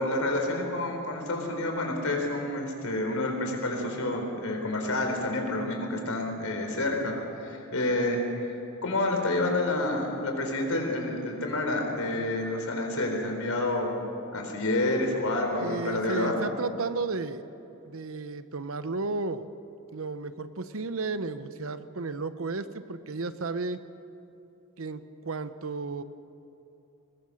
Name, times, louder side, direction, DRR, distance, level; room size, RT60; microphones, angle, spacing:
voice 1, 0.0-7.1 7.4-8.5 8.8-14.0 14.3-16.4, left 2 dB, 90° left, 2 dB, 4.1 m, -29 dB
voice 2, 15.6-17.4 17.9-19.5 19.9-23.8 24.8-26.0, right 3 dB, 75° right, 12 dB, 0.9 m, -33 dB
21.5 x 20.5 x 6.4 m, 2.9 s
head